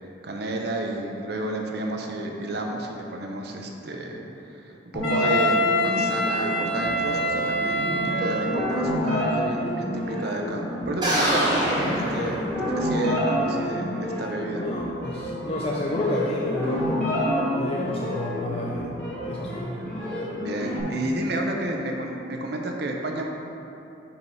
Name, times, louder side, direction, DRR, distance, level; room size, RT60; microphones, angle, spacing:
voice 1, 0.2-14.6 20.3-23.2, right 1 dB, 55° right, 1 dB, 0.7 m, -31 dB
sound 1, 4.9-20.8, equal, 5° left, 1.4 m, -29 dB
Wind instrument woodwind instrument, 5.0-8.9, equal, 80° left, 1.2 m, -25 dB
sound 2, 11.0-13.0, right 1 dB, 20° right, 1.1 m, -25 dB
voice 2, 14.5-17.2 17.5-18.9 19.3-19.8, left 1 dB, 30° left, -4 dB, 0.4 m, -30 dB
5.4 x 4.5 x 5.4 m, 3.0 s
head